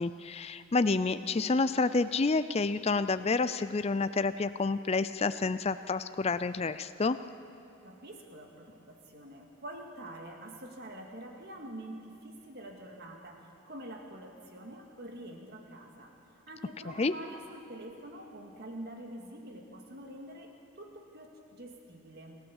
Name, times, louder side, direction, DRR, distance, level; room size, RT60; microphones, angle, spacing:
voice 1, 0.0-7.2 16.9-17.1, left 3 dB, 25° left, 12 dB, 0.4 m, -29 dB
voice 2, 7.8-16.1 16.5-22.4, right 1 dB, 45° right, 2 dB, 2.1 m, -46 dB
27.0 x 14.0 x 7.2 m, 3.0 s
head